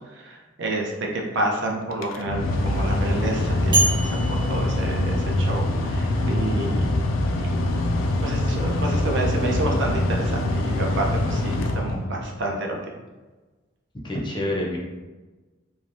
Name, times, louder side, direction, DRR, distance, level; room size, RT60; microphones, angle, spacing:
voice 1, 0.1-6.9 7.4-7.7 8.2-12.8, right 1 dB, 60° right, 0 dB, 0.5 m, -29 dB
Mechanical fan, 1.9-12.4, left 1 dB, 85° left, 0.3 m, -24 dB
sound 1, 3.7-5.8, right 3 dB, 25° right, 0.7 m, -27 dB
voice 2, 5.9-6.5 14.0-14.8, left 1 dB, 25° left, -3 dB, 0.6 m, -29 dB
3.1 x 2.1 x 2.5 m, 1.2 s
head